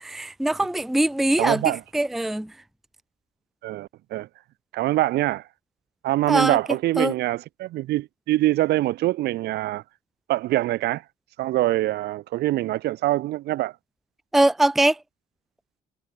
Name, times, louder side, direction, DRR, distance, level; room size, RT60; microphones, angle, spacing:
voice 1, 0.1-2.5 6.3-6.6 7.0-7.1 14.3-15.0, right 1 dB, ahead, 0.5 m, -22 dB
voice 2, 1.4-1.8 3.6-4.3 4.7-5.4 6.0-9.8 10.3-11.0 11.4-13.7, right 16 dB, 80° right, 3.0 m, -24 dB
cardioid pair, 110°, 17 cm